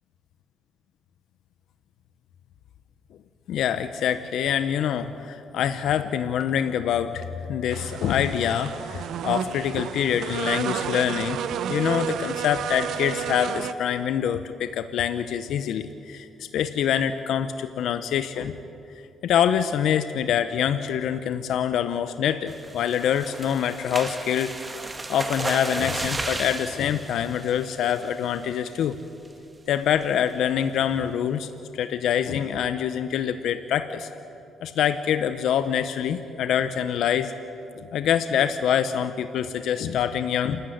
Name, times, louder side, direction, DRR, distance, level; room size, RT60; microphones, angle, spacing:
voice 1, 3.5-18.6 19.2-24.5 25.1-29.0 29.7-34.1 34.6-37.3 37.7-40.6, left 9 dB, 75° left, 10 dB, 0.8 m, -25 dB
sound 1, 7.7-13.7, right 9 dB, 75° right, 0.8 m, -31 dB
sound 2, 22.5-28.2 28.7-28.9 29.3-29.4 29.7-30.0, right 2 dB, 25° right, 1.7 m, -34 dB
28.0 x 12.5 x 9.8 m, 2.9 s
cardioid pair, 75°, 0 cm